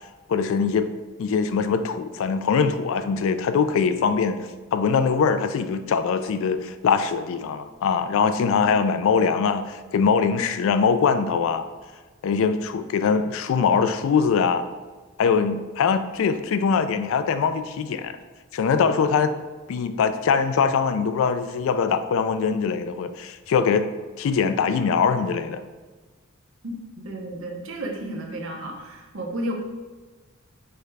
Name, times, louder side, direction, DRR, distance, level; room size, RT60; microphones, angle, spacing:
voice 1, 0.3-0.9 1.2-11.6 12.2-14.6 15.2-18.1 18.5-19.3 19.7-23.9 24.2-25.6, left 6 dB, 70° left, 11 dB, 0.3 m, -22 dB
voice 2, 26.6-29.5, right 1 dB, 70° right, 1 dB, 0.8 m, -32 dB
4.6 x 2.3 x 4.6 m, 1.3 s
head